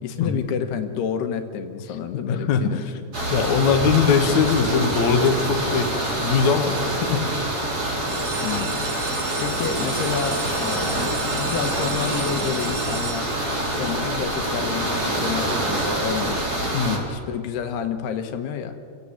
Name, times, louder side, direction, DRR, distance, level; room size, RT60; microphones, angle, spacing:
voice 1, 0.0-2.8 8.4-8.8 9.4-13.3 13.7-16.4 16.8-18.8, left 8 dB, 80° left, 7 dB, 3.4 m, -29 dB
voice 2, 2.1-2.8 3.3-5.9 6.2-7.3 16.7-17.0, left 6 dB, 55° left, 5 dB, 2.5 m, -21 dB
sound 1, 3.1-17.0, right 1 dB, 25° right, 4.1 m, -26 dB
sound 2, 8.1-13.7 14.3-14.8 15.2-15.3 15.5-15.6 16.1-16.2, right 5 dB, 75° right, 0.8 m, -34 dB
29.0 x 17.0 x 8.7 m, 2.4 s
omnidirectional pair, 4.7 m